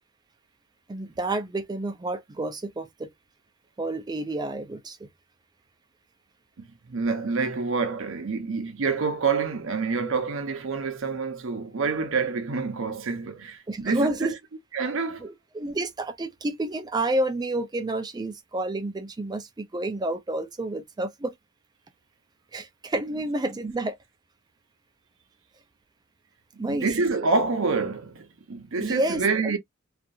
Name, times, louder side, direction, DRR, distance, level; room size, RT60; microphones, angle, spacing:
voice 1, 0.9-3.1 3.8-5.1 13.7-14.4 15.2-21.3 22.5-24.0 26.6-26.9 27.2-27.4 28.8-29.6, right 2 dB, 20° right, 0.4 m, -30 dB
voice 2, 6.6-14.3 14.7-15.3 26.6-29.6, right 4 dB, 65° right, 0.7 m, -27 dB
2.7 x 2.4 x 2.4 m
head